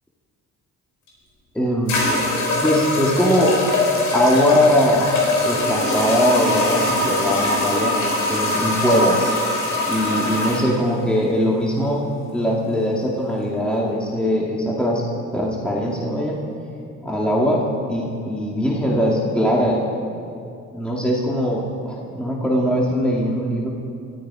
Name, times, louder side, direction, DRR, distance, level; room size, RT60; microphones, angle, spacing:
sound 1, 1.1-1.2 1.9-10.6, left 2 dB, 80° left, 4.3 m, -22 dB
voice 1, 1.5-2.0 2.6-3.5 4.1-5.1 5.4-8.0 8.3-9.3 9.9-12.0 12.3-15.0 15.3-16.4 17.0-19.8 20.7-23.7, equal, 5° left, -3 dB, 2.3 m, -21 dB
20.5 x 13.5 x 4.9 m, 2.5 s
cardioid pair, 90°, 30 cm